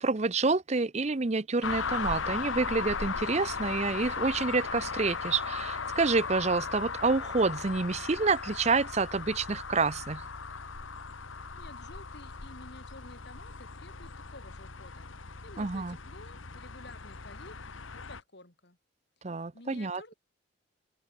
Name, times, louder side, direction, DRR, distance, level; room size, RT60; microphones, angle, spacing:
voice 1, 0.0-10.3 15.6-16.0 19.2-20.1, right 4 dB, 35° right, 0.6 m, -28 dB
sound 1, 1.6-18.2, left 5 dB, 85° left, 1.5 m, -37 dB
voice 2, 11.5-15.1 15.4-17.6 17.9-18.8 19.5-20.1, left 2 dB, 55° left, 3.5 m, -51 dB
open air
head